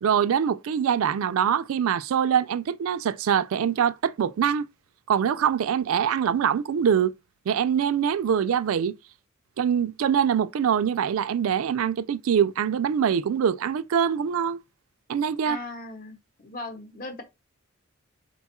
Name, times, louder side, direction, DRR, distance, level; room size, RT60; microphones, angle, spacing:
voice 1, 0.0-4.7 5.1-7.1 7.5-8.9 9.6-14.6 15.1-15.6, right 8 dB, 75° right, 0.3 m, -24 dB
voice 2, 15.4-16.2 16.4-17.2, left 2 dB, 40° left, 0.8 m, -37 dB
4.3 x 2.3 x 4.1 m
head